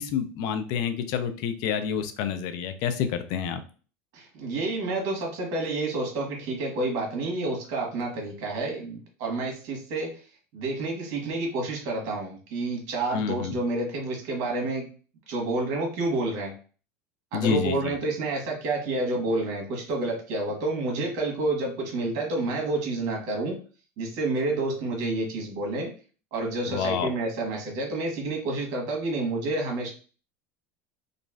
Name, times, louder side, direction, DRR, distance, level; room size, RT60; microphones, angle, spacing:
voice 1, 0.0-3.6 13.1-13.5 17.3-17.9 26.7-27.1, left 7 dB, 60° left, 9 dB, 0.4 m, -28 dB
voice 2, 4.1-10.2 10.5-14.9 15.3-16.5 17.3-23.6 24.0-25.9 26.3-29.9, right 2 dB, 60° right, 1 dB, 1.3 m, -29 dB
3.0 x 2.5 x 2.3 m, 0.38 s
supercardioid pair, 125°, 7 cm